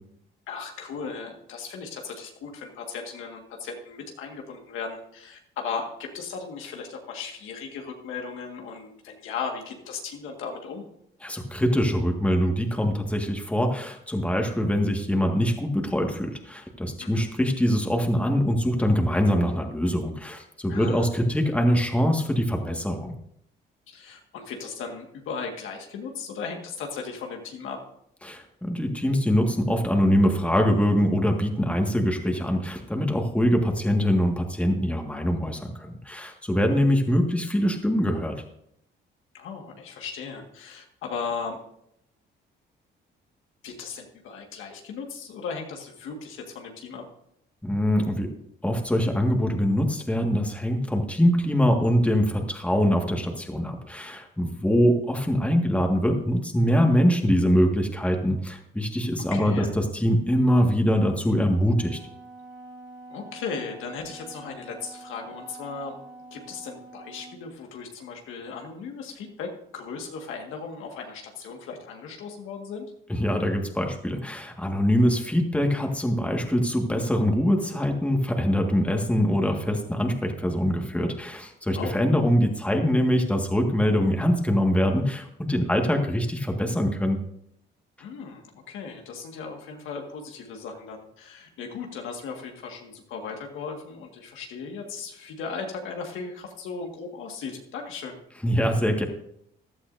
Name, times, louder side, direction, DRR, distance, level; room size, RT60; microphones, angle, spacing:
voice 1, 0.5-10.8 17.0-17.3 20.7-21.1 23.9-27.8 39.3-41.6 43.6-47.0 59.3-59.7 63.1-65.9 66.3-72.9 81.7-82.0 88.0-98.2, left 5 dB, 90° left, 2 dB, 1.9 m, -37 dB
voice 2, 11.2-23.1 28.2-38.4 47.6-48.3 48.6-62.0 73.1-87.2 98.4-99.0, equal, 5° left, 2 dB, 1.8 m, -23 dB
Wind instrument woodwind instrument, 61.2-67.5, right 2 dB, 90° right, 2.2 m, -46 dB
15.5 x 11.5 x 2.7 m, 0.74 s
cardioid pair, 90°, 20 cm